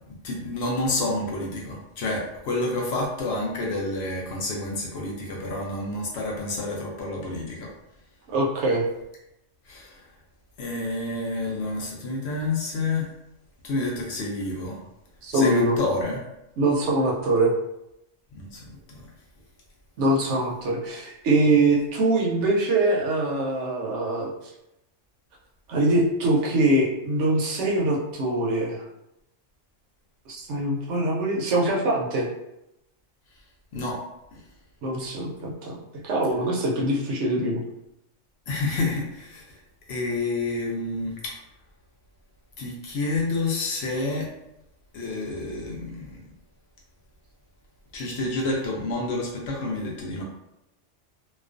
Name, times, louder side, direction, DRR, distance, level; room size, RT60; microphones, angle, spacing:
voice 1, 0.1-7.7 9.7-10.2 10.6-13.1 13.6-14.8 15.3-16.2 18.3-19.1 33.7-34.0 34.3-34.4 38.5-39.6 39.9-41.4 42.6-44.3 44.9-46.2 47.9-50.2, left 2 dB, 65° left, -2 dB, 0.7 m, -29 dB
voice 2, 8.3-8.8 15.2-15.8 16.6-17.5 20.0-24.3 25.7-28.8 30.4-32.3 34.8-35.8 36.0-37.6, right 2 dB, 75° right, -2 dB, 0.9 m, -23 dB
2.4 x 2.2 x 2.4 m, 0.86 s
omnidirectional pair, 1.3 m